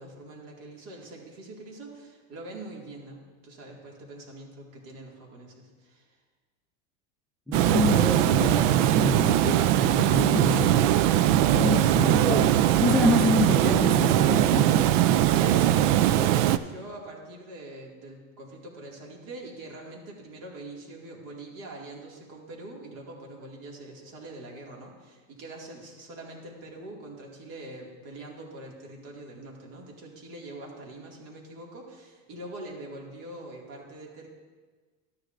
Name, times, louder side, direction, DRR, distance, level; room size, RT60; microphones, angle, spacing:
voice 1, 0.0-6.2 15.3-34.3, right 1 dB, 50° right, -2 dB, 2.2 m, -43 dB
voice 2, 7.5-10.9 11.5-12.5 12.8-14.9, left 2 dB, ahead, 1 dB, 0.5 m, -27 dB
Water, 7.5-16.6, right 12 dB, 70° right, 0.5 m, -21 dB
13.0 x 9.6 x 2.6 m, 1.4 s
supercardioid pair, 150°, 39 cm